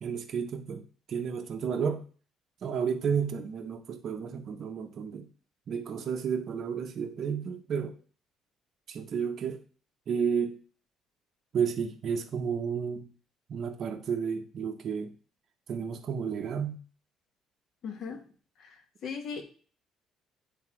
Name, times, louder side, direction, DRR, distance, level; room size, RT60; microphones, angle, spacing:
voice 1, 0.0-0.8 1.1-2.0 2.6-5.3 5.7-8.0 8.9-9.6 10.1-10.6 11.5-13.1 13.5-15.1 15.7-16.8, right 6 dB, 45° right, 0.6 m, -32 dB
voice 2, 17.8-18.2 19.0-19.4, left 6 dB, 50° left, 1.1 m, -36 dB
7.7 x 3.4 x 4.7 m
cardioid pair, 165°, 0 cm